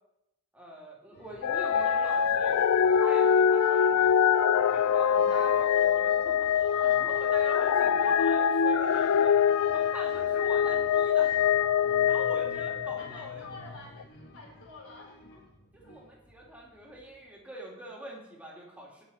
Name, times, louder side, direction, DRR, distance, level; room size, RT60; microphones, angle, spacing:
voice 1, 0.5-2.6 3.0-4.1 4.7-9.3 9.6-11.3 12.1-13.5 15.7-19.0, right 1 dB, 5° right, -3 dB, 2.6 m, -44 dB
sound 1, 1.1-17.3, left 1 dB, 50° left, 1.7 m, -53 dB
sound 2, 1.4-13.4 14.0-14.1, left 8 dB, 90° left, 0.4 m, -24 dB
voice 2, 3.1-3.5 6.7-7.1 13.0-15.4, left 3 dB, 70° left, -2 dB, 4.5 m, -49 dB
17.0 x 6.5 x 4.4 m, 0.87 s
head